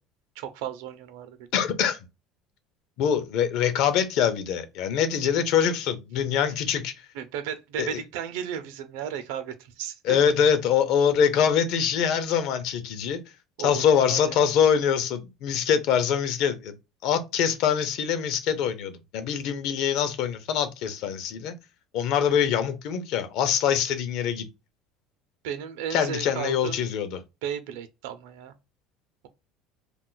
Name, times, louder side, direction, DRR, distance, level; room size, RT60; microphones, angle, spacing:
voice 1, 0.4-1.6 7.1-10.2 13.6-14.4 25.4-26.8 27.4-28.5, right 9 dB, 85° right, 0.6 m, -34 dB
voice 2, 1.5-2.0 3.0-6.9 7.8-8.0 10.0-13.2 13.6-16.7 17.0-21.5 21.9-24.5 25.9-27.2, left 8 dB, 55° left, 0.6 m, -24 dB
2.4 x 2.4 x 3.9 m
cardioid pair, 170°, 0 cm